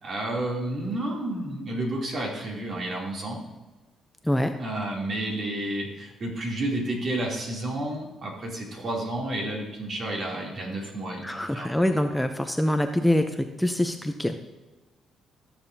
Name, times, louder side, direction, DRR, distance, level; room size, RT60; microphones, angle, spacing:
voice 1, 0.0-3.4 4.6-12.0, right 1 dB, 55° right, -2 dB, 2.9 m, -31 dB
voice 2, 11.2-13.2 13.6-14.4, left 1 dB, 5° left, 6 dB, 0.6 m, -24 dB
14.0 x 7.0 x 2.8 m, 1.1 s
cardioid pair, 90°, 0 cm